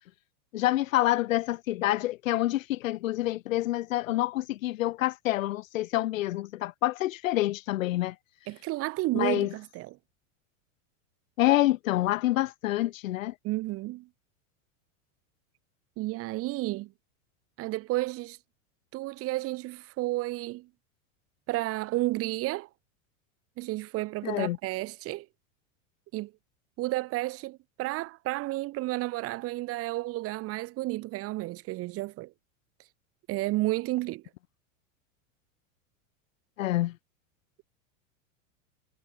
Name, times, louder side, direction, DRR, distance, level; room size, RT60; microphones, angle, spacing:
voice 1, 0.5-8.1 9.1-9.5 11.4-13.3 24.2-24.6 36.6-37.0, left 16 dB, 80° left, 2.7 m, -27 dB
voice 2, 8.5-10.0 13.4-14.1 16.0-16.9 17.6-18.4 18.9-20.7 21.5-22.7 23.6-25.3 26.1-26.3 26.8-32.3 33.3-34.2, right 19 dB, 35° right, 1.7 m, -31 dB
supercardioid pair, 150°, 39 cm